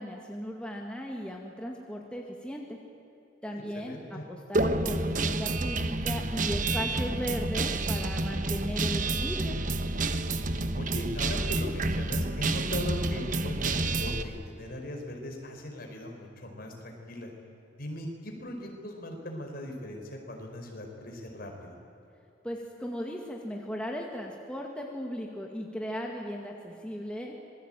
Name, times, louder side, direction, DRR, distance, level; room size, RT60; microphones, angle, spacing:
voice 1, 0.0-2.8 3.4-9.6 22.4-27.4, equal, 5° left, 0 dB, 2.0 m, -37 dB
voice 2, 3.5-4.2 10.7-17.3 17.8-21.8, left 1 dB, 50° left, 2 dB, 4.9 m, -39 dB
Guitar, 4.5-14.2, right 2 dB, 40° right, 1.1 m, -29 dB
26.0 x 20.5 x 9.1 m, 2.8 s
head